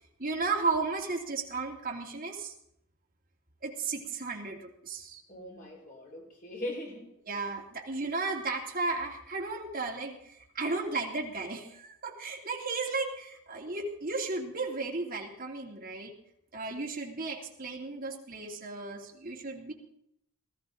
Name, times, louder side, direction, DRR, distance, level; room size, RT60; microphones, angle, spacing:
voice 1, 0.2-2.5 3.6-5.2 7.2-16.1 16.5-19.7, right 3 dB, 40° right, -1 dB, 2.9 m, -34 dB
voice 2, 5.3-7.1, left 1 dB, 40° left, -2 dB, 5.0 m, -40 dB
18.5 x 14.5 x 3.9 m, 0.75 s
head